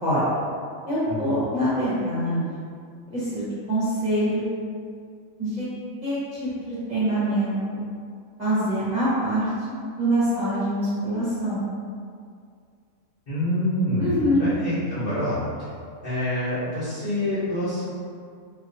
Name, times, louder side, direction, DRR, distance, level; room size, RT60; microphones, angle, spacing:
voice 1, 0.9-2.6 3.1-4.6 5.4-5.7 6.0-7.8 8.4-9.5 9.9-11.6 14.0-14.4, equal, 35° right, -11 dB, 0.9 m, -25 dB
voice 2, 13.3-15.7 16.0-17.9, left 1 dB, 35° left, -16 dB, 1.2 m, -26 dB
4.0 x 2.8 x 2.7 m, 2.2 s
omnidirectional pair, 1.5 m